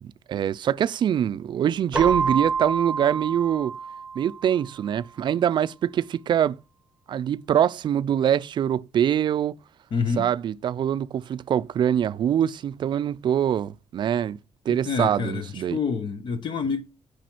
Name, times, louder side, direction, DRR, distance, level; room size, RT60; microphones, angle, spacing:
voice 1, 0.0-3.8 4.2-6.6 7.1-9.6 10.2-14.4 14.7-15.8, right 9 dB, 50° right, 0.4 m, -24 dB
Keyboard (musical), 1.9-4.7, right 5 dB, 10° right, 1.1 m, -28 dB
voice 2, 9.9-10.3 14.7-16.8, left 5 dB, 50° left, 1.0 m, -28 dB
9.2 x 5.0 x 6.0 m
cardioid pair, 150°, 10 cm